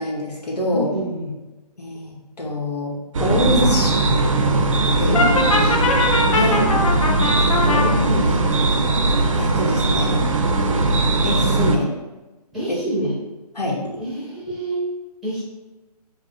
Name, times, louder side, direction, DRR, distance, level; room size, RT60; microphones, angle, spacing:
voice 1, 0.0-0.9 1.8-4.0 5.0-5.3 6.3-6.7 7.4-7.8 9.4-10.2 11.2-11.9 12.7-12.8 13.5-13.8, left 1 dB, 80° left, -3 dB, 1.1 m, -25 dB
voice 2, 0.7-1.3 5.0-5.9 7.8-8.8 12.5-13.2 14.0-14.8 15.2-15.4, equal, ahead, -9 dB, 0.7 m, -27 dB
sound 1, 3.1-11.8, right 2 dB, 55° right, 0.5 m, -19 dB
Brass instrument, 5.1-7.9, left 2 dB, 55° left, 0.5 m, -21 dB
4.8 x 2.2 x 2.4 m, 1.1 s
figure-of-eight pair, 155°, 20 cm